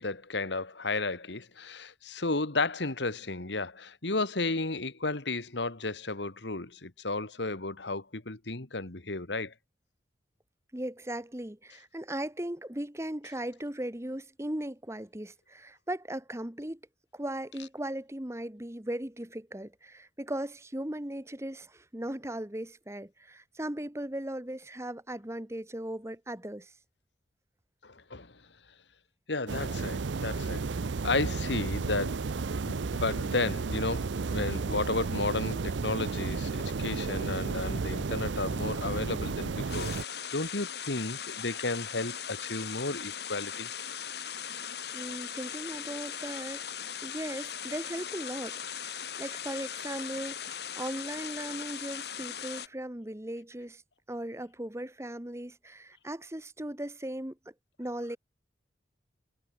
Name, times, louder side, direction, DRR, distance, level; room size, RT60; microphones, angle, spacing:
voice 1, 0.0-9.5 27.8-28.4 29.3-30.7 31.0-32.3 32.7-39.9 40.3-43.7, left 3 dB, 80° left, 2.1 m, -33 dB
voice 2, 10.7-16.8 17.1-26.7 44.9-46.6 47.0-53.8 54.1-57.5 57.8-58.2, right 1 dB, 15° right, 1.3 m, -38 dB
sound 1, 29.5-40.0, right 4 dB, 85° right, 0.6 m, -33 dB
sound 2, 39.7-52.7, left 8 dB, 65° left, 5.1 m, -39 dB
head